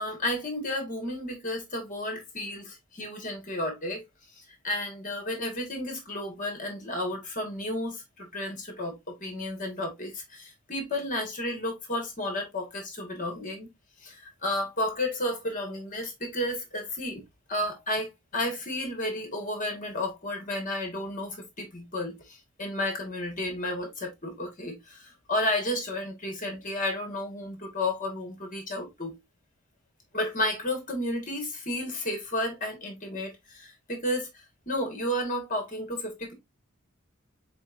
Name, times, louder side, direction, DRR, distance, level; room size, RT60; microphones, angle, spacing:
voice 1, 0.0-4.0 4.3-13.7 14.0-17.2 17.5-29.1 30.1-36.3, left 1 dB, 40° left, 1.7 m, -32 dB
4.6 x 4.3 x 2.5 m
head